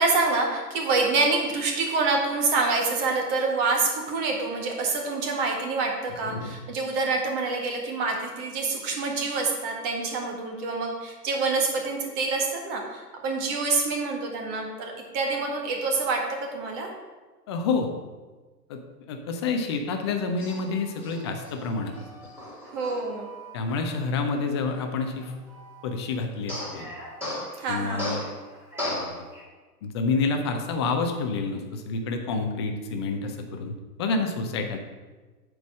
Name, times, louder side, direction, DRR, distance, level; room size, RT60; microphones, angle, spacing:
voice 1, 0.0-16.9 22.7-23.3 27.6-28.2, right 3 dB, 35° right, 1 dB, 1.9 m, -26 dB
voice 2, 6.2-6.5 17.5-17.9 18.7-18.8 19.1-21.9 23.5-25.3 25.8-26.9 27.7-28.2 28.8-29.2 29.8-34.8, left 4 dB, 20° left, 5 dB, 0.4 m, -28 dB
Male speech man speaking, 20.4-26.0 26.5-29.4, left 1 dB, 5° right, 3.0 m, -37 dB
8.1 x 4.7 x 6.2 m, 1.3 s
hypercardioid pair, 120°, 49 cm